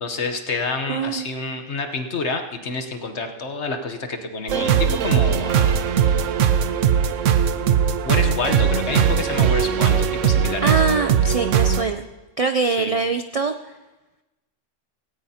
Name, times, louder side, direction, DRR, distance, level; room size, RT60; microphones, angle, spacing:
voice 1, 0.0-5.7 8.0-10.7 12.6-12.9, left 3 dB, 65° left, 6 dB, 1.3 m, -28 dB
voice 2, 0.9-1.3 10.6-12.0 12.4-13.7, right 4 dB, 65° right, 8 dB, 0.3 m, -23 dB
sound 1, 4.5-11.8, right 8 dB, 80° right, 1.1 m, -19 dB
17.5 x 17.5 x 2.8 m, 1.1 s
omnidirectional pair, 1.3 m